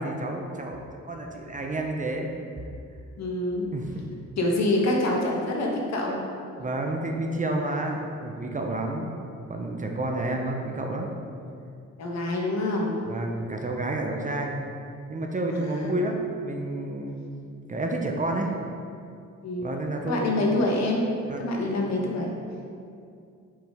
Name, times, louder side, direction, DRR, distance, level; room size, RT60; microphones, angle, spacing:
voice 1, 0.0-2.3 3.7-4.1 6.6-9.2 9.5-11.1 13.1-14.6 15.1-17.2 17.7-18.5 19.5-20.6 21.3-21.4 21.7-22.1, right 2 dB, 25° right, 1 dB, 0.7 m, -30 dB
voice 2, 3.2-3.7 4.4-6.2 12.0-13.0 15.5-16.0 19.4-19.7 20.1-21.0 21.4-22.3, left 2 dB, 60° left, -1 dB, 1.3 m, -26 dB
6.1 x 5.1 x 3.6 m, 2.4 s
cardioid pair, 90°, 30 cm